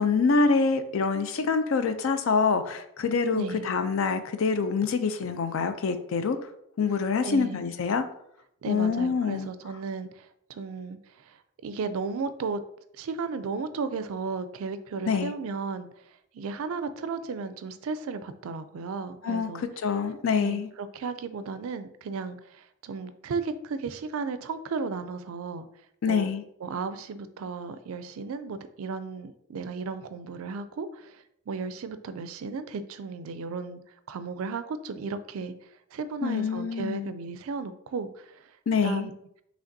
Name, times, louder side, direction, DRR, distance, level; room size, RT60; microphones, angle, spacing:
voice 1, 0.0-6.4 6.8-8.0 8.7-9.5 15.1-15.3 19.2-19.5 19.8-20.7 26.0-26.4 36.2-37.1 38.7-39.1, left 5 dB, 65° left, 9 dB, 0.4 m, -25 dB
voice 2, 3.3-3.7 7.2-7.6 8.6-12.6 13.0-15.9 16.3-19.7 20.4-25.7 26.1-26.3 26.6-33.8 34.1-35.5 35.9-38.5 38.8-39.1, right 4 dB, 70° right, 12 dB, 0.3 m, -34 dB
5.0 x 3.3 x 2.6 m, 0.75 s
head